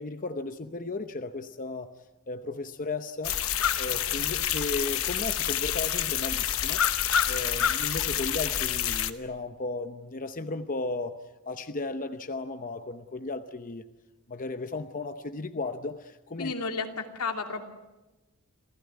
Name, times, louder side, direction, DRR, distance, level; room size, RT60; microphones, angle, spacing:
voice 1, 0.0-1.9 2.3-3.3 3.8-6.8 7.3-11.2 11.5-13.8 14.3-16.5, left 3 dB, 35° left, 9 dB, 0.8 m, -35 dB
sound 1, 3.2-9.1, left 10 dB, 65° left, 1.1 m, -28 dB
voice 2, 16.4-17.6, left 4 dB, 85° left, 4 dB, 2.7 m, -32 dB
27.5 x 16.0 x 9.6 m, 1.1 s
head